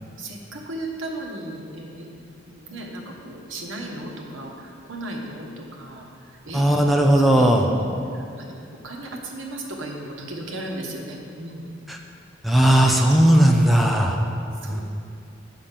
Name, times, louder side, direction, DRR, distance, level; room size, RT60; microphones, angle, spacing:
voice 1, 0.2-2.1 2.5-6.6 7.1-11.6 13.2-13.5 14.6-14.8, right 1 dB, 85° right, 0 dB, 1.3 m, -36 dB
voice 2, 6.5-7.7 11.9-12.0 12.4-14.2 14.7-14.8, right 1 dB, ahead, 1 dB, 0.6 m, -17 dB
7.3 x 5.6 x 6.7 m, 2.4 s
head